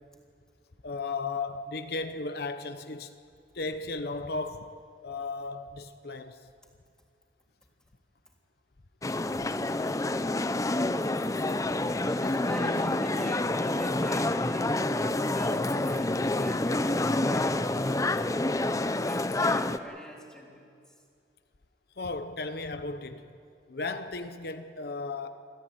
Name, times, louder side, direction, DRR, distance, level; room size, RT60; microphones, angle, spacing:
voice 1, 0.8-3.1 3.5-4.7 5.0-6.5 22.0-23.3 23.7-25.3, left 3 dB, 60° left, 0.9 m, -35 dB
sound 1, 9.0-19.8, left 2 dB, 20° left, 0.6 m, -28 dB
voice 2, 12.0-18.1 18.4-20.7, equal, 5° left, 3.6 m, -43 dB
27.5 x 14.5 x 9.3 m
head